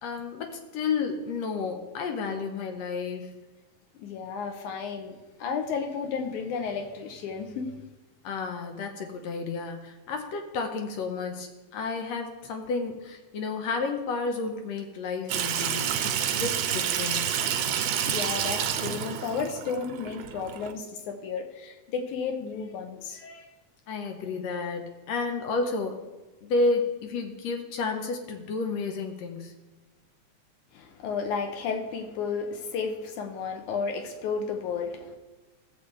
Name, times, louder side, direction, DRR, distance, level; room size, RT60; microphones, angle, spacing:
voice 1, 0.0-3.3 8.2-17.4 23.9-26.0 26.4-29.5, left 4 dB, 70° left, 4 dB, 2.1 m, -31 dB
voice 2, 4.0-7.7 18.0-23.5 30.7-35.2, left 5 dB, 90° left, 4 dB, 2.4 m, -33 dB
Water tap faucet / Sink (filling or washing), 15.3-20.7, right 9 dB, 90° right, 2.2 m, -29 dB
15.0 x 7.1 x 3.4 m, 1.2 s
omnidirectional pair, 3.4 m